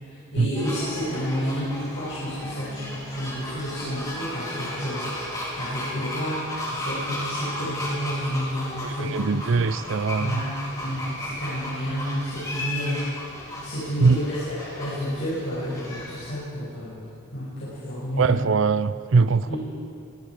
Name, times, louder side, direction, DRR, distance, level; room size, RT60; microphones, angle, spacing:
voice 1, 0.0-5.1 5.6-9.6 10.2-13.1 13.6-17.0 17.3-18.4 19.5-19.6, equal, 55° left, 6.6 m, -30 dB
sound 1, 0.5-16.3, left 1 dB, 15° left, 4.0 m, -35 dB
sound 2, 2.4-9.0, equal, 80° right, 6.4 m, -47 dB
voice 2, 8.8-10.4 14.0-14.2 18.2-19.6, right 4 dB, 60° right, 0.5 m, -22 dB
23.0 x 22.0 x 5.0 m
head